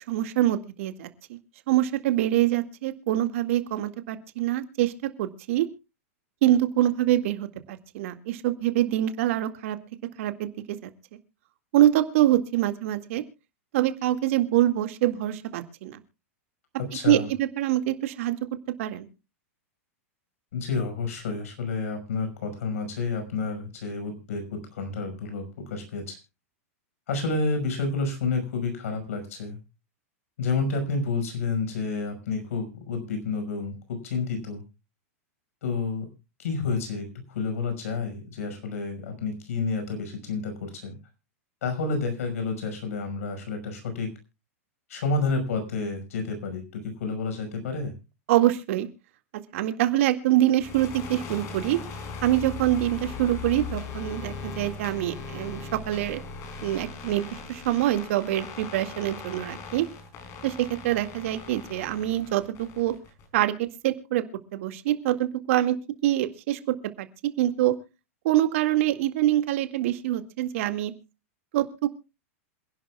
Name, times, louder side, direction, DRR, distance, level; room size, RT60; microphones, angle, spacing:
voice 1, 0.0-1.4 1.7-5.7 6.4-9.8 10.2-10.9 11.7-13.2 13.7-16.0 17.1-18.4 18.8-19.1 48.3-48.9 49.5-51.8 52.2-56.2 56.6-59.9 60.4-62.9 63.3-63.5 63.8-64.2 64.5-65.8 66.0-67.7 68.2-70.9 71.5-71.9, right 13 dB, 65° right, 8 dB, 2.0 m, -25 dB
voice 2, 16.8-17.3 20.5-26.2 27.1-29.6 30.4-34.6 35.6-36.1 36.4-41.0 41.6-44.1 44.9-47.9, left 4 dB, 75° left, 7 dB, 5.6 m, -30 dB
sound 1, 50.6-63.4, left 5 dB, 40° left, 4.6 m, -39 dB
27.0 x 11.0 x 2.3 m, 0.29 s
hypercardioid pair, 120°, 8 cm